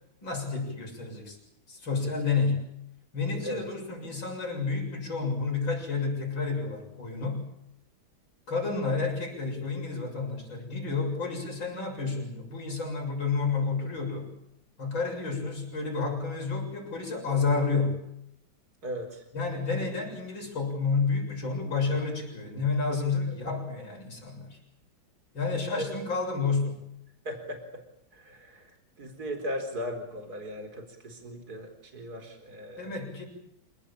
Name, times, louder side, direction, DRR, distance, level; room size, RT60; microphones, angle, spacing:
voice 1, 0.2-1.4 1.7-2.6 3.1-7.4 8.5-14.3 14.8-18.0 19.3-24.6 25.3-26.8 32.8-33.2, left 4 dB, 75° left, 1 dB, 8.0 m, -30 dB
voice 2, 18.8-19.2 25.5-25.9 27.2-27.8 28.1-28.7 29.0-33.1, equal, 50° right, 5 dB, 4.8 m, -37 dB
28.5 x 18.5 x 8.8 m, 0.78 s
omnidirectional pair, 2.2 m